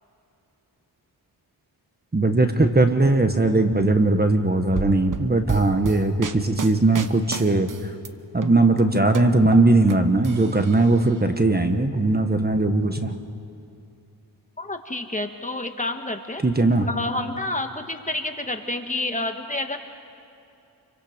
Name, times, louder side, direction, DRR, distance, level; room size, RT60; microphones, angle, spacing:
voice 1, 2.1-7.7 8.3-13.1 16.4-16.9, right 2 dB, 25° right, 6 dB, 1.4 m, -19 dB
sound 1, 4.8-8.1 8.4-9.9 10.2-11.1, right 6 dB, 50° right, 1.2 m, -32 dB
voice 2, 14.6-16.4 16.9-19.8, left 2 dB, 20° left, 5 dB, 1.6 m, -29 dB
29.0 x 24.0 x 5.2 m, 2.7 s
cardioid pair, 75°, 41 cm